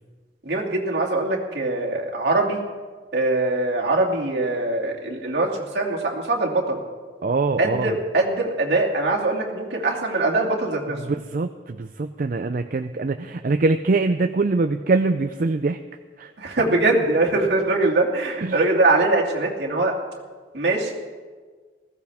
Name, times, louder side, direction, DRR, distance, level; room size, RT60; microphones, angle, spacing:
voice 1, 0.4-2.6 3.1-6.8 7.6-11.1 16.4-19.9 20.5-20.9, right 2 dB, 70° right, -2 dB, 2.6 m, -22 dB
voice 2, 7.2-7.9 11.0-15.8 16.2-16.6 18.4-18.6, right 3 dB, 50° right, 8 dB, 0.5 m, -23 dB
20.0 x 15.5 x 3.5 m, 1.5 s
head